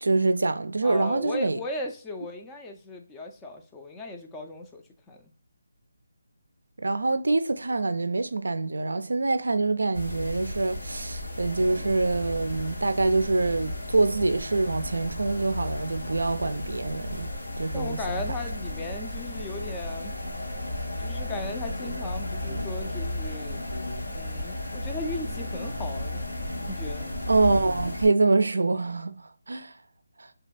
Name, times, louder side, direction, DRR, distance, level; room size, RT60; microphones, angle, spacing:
voice 1, 0.0-1.6 6.8-18.2 27.3-29.7, right 3 dB, 75° right, 0.4 m, -25 dB
voice 2, 0.8-5.3 17.7-20.2 21.0-23.6 24.1-26.2 26.7-27.2, left 2 dB, 10° left, 0.4 m, -37 dB
sound 1, 9.9-28.1, left 1 dB, 85° left, 1.2 m, -34 dB
3.2 x 2.8 x 2.3 m
figure-of-eight pair, 155°, 0 cm